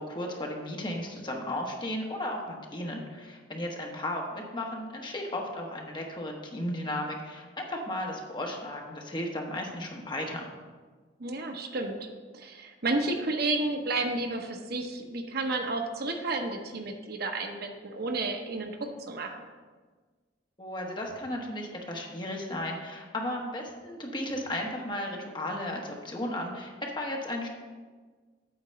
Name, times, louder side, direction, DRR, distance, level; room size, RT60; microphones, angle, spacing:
voice 1, 0.0-10.6 20.6-27.5, left 1 dB, 25° left, 0 dB, 1.2 m, -35 dB
voice 2, 11.2-12.0 12.3-19.3, right 2 dB, 60° right, 4 dB, 0.8 m, -31 dB
8.7 x 4.0 x 6.8 m, 1.4 s
head